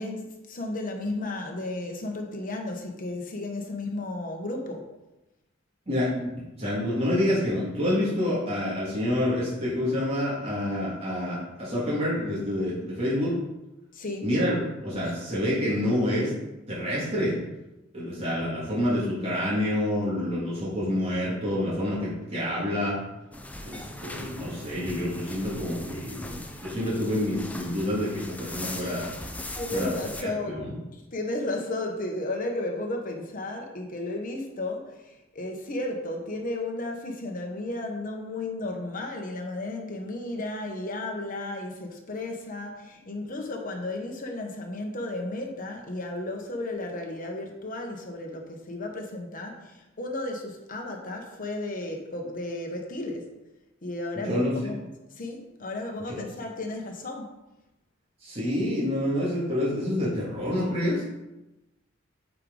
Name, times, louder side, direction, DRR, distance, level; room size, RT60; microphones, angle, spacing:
voice 1, 0.0-4.9 13.9-14.2 28.8-29.0 29.6-30.7 30.9-53.3 53.8-54.8 55.2-57.3, left 2 dB, 45° left, 2 dB, 1.2 m, -34 dB
voice 2, 5.9-13.4 14.2-14.5 14.8-16.3 16.7-17.4 17.9-23.0 23.6-29.1 29.7-29.9 30.1-30.7 54.2-54.7 56.1-56.2 58.2-61.0, left 1 dB, 30° right, -8 dB, 2.3 m, -28 dB
sound 1, 23.3-30.2, left 1 dB, 5° left, 0.5 m, -39 dB
8.5 x 4.9 x 3.9 m, 0.99 s
head